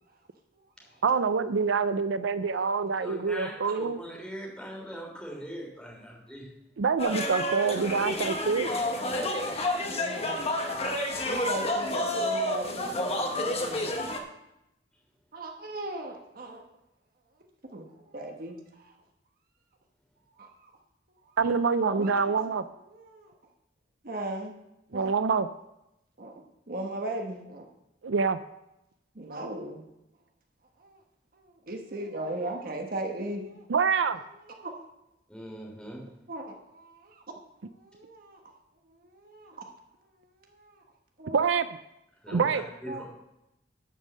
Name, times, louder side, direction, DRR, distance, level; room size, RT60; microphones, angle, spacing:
voice 1, 1.0-4.0 6.8-8.7 21.4-22.6 24.9-25.5 28.0-28.4 33.7-34.2 41.3-41.7 42.3-42.6, right 5 dB, 90° right, 12 dB, 0.5 m, -26 dB
voice 2, 2.4-2.8 3.5-3.8 9.9-10.5 11.3-13.9 15.3-16.6 17.7-17.8 18.1-18.9 20.4-20.5 21.4-21.5 21.8-22.1 22.9-23.3 24.0-24.5 24.9-25.1 26.2-26.3 26.7-27.7 29.1-29.8 30.8-31.0 31.3-33.6 34.5-34.7 36.3-37.2 37.7-38.4 38.9-39.7 40.4-40.8 41.2-41.3 42.3-42.4 42.9-43.0, right 1 dB, 50° right, 3 dB, 1.4 m, -38 dB
voice 3, 3.0-3.5 3.8-6.5 35.3-36.0 42.2-43.1, equal, 5° left, -2 dB, 3.1 m, -40 dB
sound 1, 7.0-14.2, left 1 dB, 35° left, 1.2 m, -30 dB
11.5 x 5.4 x 7.4 m, 0.88 s
head